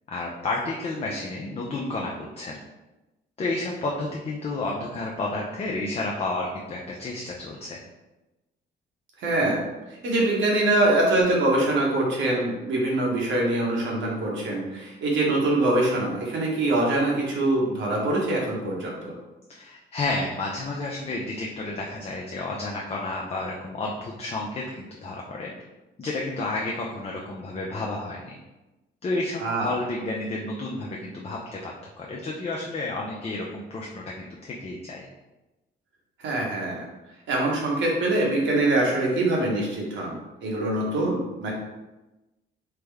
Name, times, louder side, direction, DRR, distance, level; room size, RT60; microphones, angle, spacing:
voice 1, 0.1-2.5 3.4-7.8 19.5-25.5 26.0-28.4 29.0-35.1, left 2 dB, 30° left, -2 dB, 0.5 m, -31 dB
voice 2, 9.2-19.1 29.4-29.7 36.2-36.8 37.3-40.1 40.4-41.5, right 2 dB, 70° right, -2 dB, 1.0 m, -24 dB
3.4 x 2.1 x 3.4 m, 1.0 s
cardioid pair, 90°, 20 cm